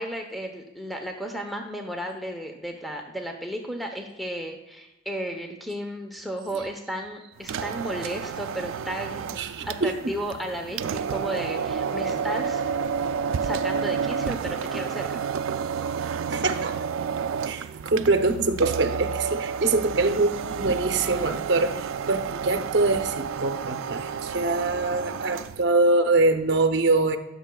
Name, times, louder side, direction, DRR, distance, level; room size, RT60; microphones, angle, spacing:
voice 1, 0.0-12.8 13.4-15.2, right 1 dB, ahead, 2 dB, 0.8 m, -34 dB
sound 1, 7.4-25.6, right 6 dB, 90° right, 0.4 m, -30 dB
voice 2, 9.4-9.9 16.3-16.8 17.4-27.2, right 3 dB, 55° right, 7 dB, 0.7 m, -24 dB
15.0 x 6.6 x 2.3 m, 1.0 s
head